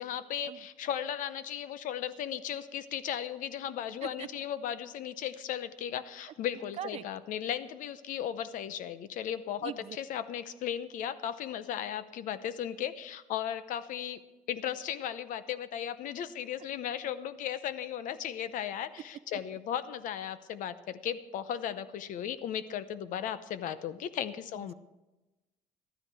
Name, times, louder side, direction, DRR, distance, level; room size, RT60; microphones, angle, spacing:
voice 1, 0.0-14.2 14.5-24.7, left 9 dB, 65° left, 14 dB, 0.7 m, -36 dB
voice 2, 6.5-7.0 9.6-10.0 24.5-24.7, right 11 dB, 45° right, 14 dB, 0.5 m, -41 dB
13.0 x 13.0 x 4.7 m, 1.1 s
cardioid pair, 140°, 15 cm